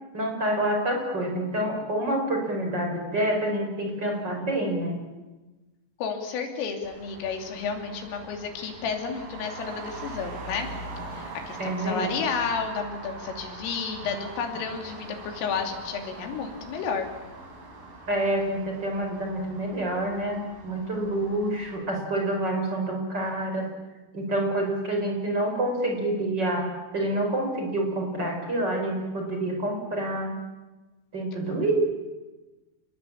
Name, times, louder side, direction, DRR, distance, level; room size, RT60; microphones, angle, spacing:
voice 1, 0.1-5.0 11.6-12.1 18.1-23.7 24.1-26.7 26.9-30.4 31.1-31.9, right 1 dB, 20° right, 2 dB, 4.9 m, -27 dB
voice 2, 6.0-10.7 11.1-17.1, left 6 dB, 75° left, 4 dB, 5.5 m, -31 dB
Traffic noise roadway noise, 6.8-21.8, right 2 dB, 45° right, 5.8 m, -42 dB
28.5 x 21.0 x 8.7 m, 1.2 s
omnidirectional pair, 5.8 m